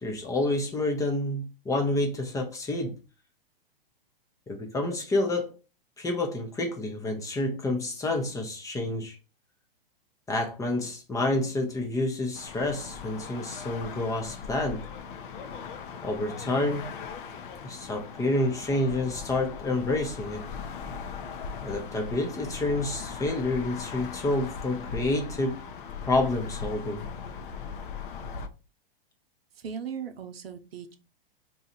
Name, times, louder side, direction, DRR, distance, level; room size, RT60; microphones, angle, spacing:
voice 1, 0.0-3.0 4.5-5.5 6.0-9.2 10.3-14.9 16.0-16.9 17.6-20.5 21.6-25.6 26.1-27.1, left 2 dB, 10° left, 0.6 m, -28 dB
sound 1, 12.3-28.5, left 6 dB, 60° left, 0.7 m, -39 dB
voice 2, 29.6-30.9, right 7 dB, 80° right, 0.7 m, -37 dB
2.8 x 2.3 x 4.2 m
hypercardioid pair, 120°, 30 cm